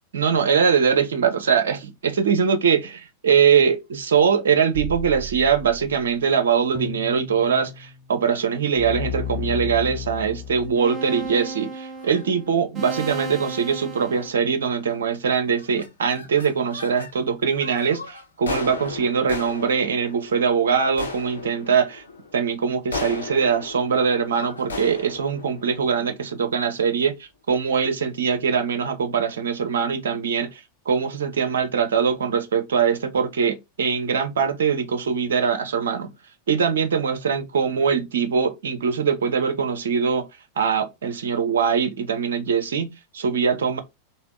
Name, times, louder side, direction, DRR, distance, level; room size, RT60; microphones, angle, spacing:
voice 1, 0.1-2.9 3.2-22.0 22.3-27.1 27.5-30.5 30.9-36.1 36.5-40.2 40.6-43.8, right 6 dB, 65° right, 0.6 m, -22 dB
sound 1, 4.7-6.1 6.8-8.1 8.8-14.3, left 1 dB, 20° right, 0.9 m, -33 dB
sound 2, 11.1-11.4 12.0-12.2 12.9-13.2 13.4-13.5 13.9-14.3 14.8-15.2 15.4-17.1 17.5-26.7, left 3 dB, 75° left, 0.8 m, -36 dB
3.3 x 2.6 x 2.4 m
figure-of-eight pair, 90°, 0 cm